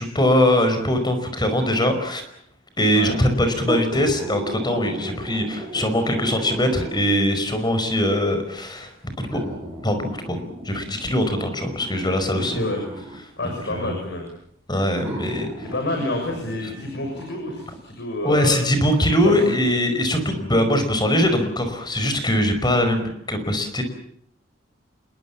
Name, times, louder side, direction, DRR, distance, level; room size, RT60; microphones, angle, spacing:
voice 1, 0.0-2.2 2.8-8.9 9.2-9.4 9.8-12.6 13.7-13.9 14.7-15.5 18.2-23.8, left 1 dB, 20° left, 8 dB, 5.2 m, -21 dB
sound 1, 3.7-7.2 8.2-8.3 9.3-13.2 14.3-14.4 15.0-17.7 18.1-18.2, equal, 15° right, 7.9 m, -34 dB
voice 2, 12.3-12.8 13.4-14.3 15.7-18.6 19.2-19.5, left 1 dB, 60° left, 3 dB, 6.6 m, -28 dB
27.5 x 22.0 x 7.3 m, 0.69 s
head